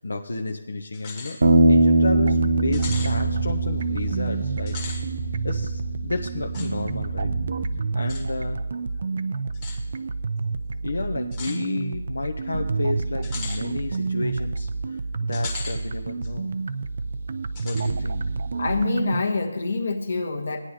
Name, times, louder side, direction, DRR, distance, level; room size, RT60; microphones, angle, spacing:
voice 1, 0.0-1.4 1.6-4.8 5.4-7.3 7.9-8.6 10.8-16.5 17.6-18.2, left 3 dB, 70° left, 3 dB, 0.9 m, -31 dB
sound 1, 0.9-1.4 1.8-1.9 2.7-3.1 4.6-5.0 6.5-6.7 8.1-8.2 9.5-9.8 11.3-11.6 13.2-13.6 15.3-15.8 16.2-16.3 17.6-17.9, left 4 dB, 15° left, 1.3 m, -37 dB
Bass guitar, 1.4-7.7, right 2 dB, 60° right, 0.9 m, -23 dB
sound 2, 2.1-19.2, right 4 dB, 40° right, 0.4 m, -29 dB
voice 2, 18.5-20.6, left 3 dB, 45° left, 5 dB, 1.3 m, -26 dB
17.5 x 9.8 x 2.9 m, 1.1 s
figure-of-eight pair, 175°, 0 cm